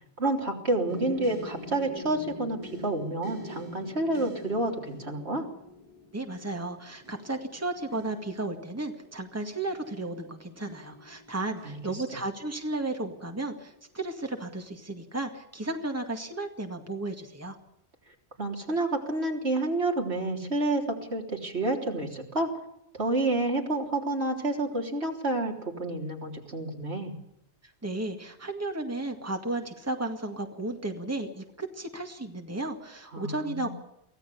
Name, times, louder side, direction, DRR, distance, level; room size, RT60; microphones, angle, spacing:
voice 1, 0.2-5.5 11.6-11.8 18.4-22.5 22.9-27.1 33.1-33.7, right 2 dB, 70° right, 1 dB, 3.8 m, -29 dB
sound 1, 0.9-12.7 13.4-13.9 14.3-14.5, left 1 dB, 30° right, 8.0 m, -45 dB
voice 2, 6.1-17.6 27.8-33.7, right 2 dB, 15° right, 4 dB, 2.1 m, -34 dB
24.0 x 16.5 x 7.0 m, 0.80 s
omnidirectional pair, 1.1 m